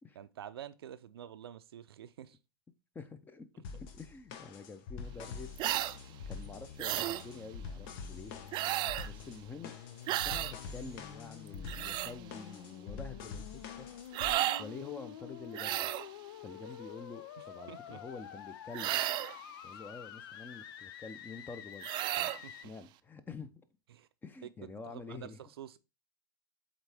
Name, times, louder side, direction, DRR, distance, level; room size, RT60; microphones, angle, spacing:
voice 1, 0.1-2.4 17.4-18.0 19.7-19.8 22.4-22.6 23.9-24.1 24.4-24.5 24.9-25.8, right 10 dB, 80° right, 0.6 m, -48 dB
voice 2, 2.9-5.6 6.1-8.3 9.0-9.7 10.2-13.9 14.6-15.9 16.4-19.0 19.6-23.5 24.2-25.4, left 4 dB, 15° left, 0.7 m, -48 dB
sound 1, 3.6-14.3, left 5 dB, 50° left, 1.0 m, -46 dB
sound 2, 5.1-22.6, left 10 dB, 70° left, 0.5 m, -49 dB
sound 3, 5.6-6.0 6.8-7.2 8.5-9.1 10.1-10.5 11.5-12.1 14.1-14.6 15.5-16.1 18.7-19.4 21.8-22.4, right 15 dB, 35° right, 0.4 m, -33 dB
8.0 x 3.6 x 3.4 m
hypercardioid pair, 115°, 13 cm